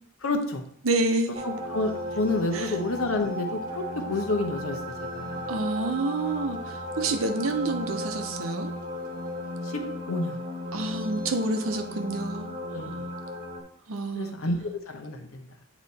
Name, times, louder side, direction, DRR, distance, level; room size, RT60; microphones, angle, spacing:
voice 1, 0.2-0.6 1.4-3.8 4.1-4.8 5.1-5.5 9.6-9.8 10.1-10.4 12.7-13.0 14.1-15.4, left 2 dB, 85° left, 5 dB, 0.9 m, -29 dB
voice 2, 0.8-1.4 2.5-2.8 5.5-8.7 10.7-12.5 13.9-14.4, right 2 dB, 75° right, 7 dB, 0.7 m, -28 dB
sound 1, 1.3-13.6, left 1 dB, 40° right, 1.0 m, -35 dB
8.3 x 3.0 x 4.1 m, 0.64 s
head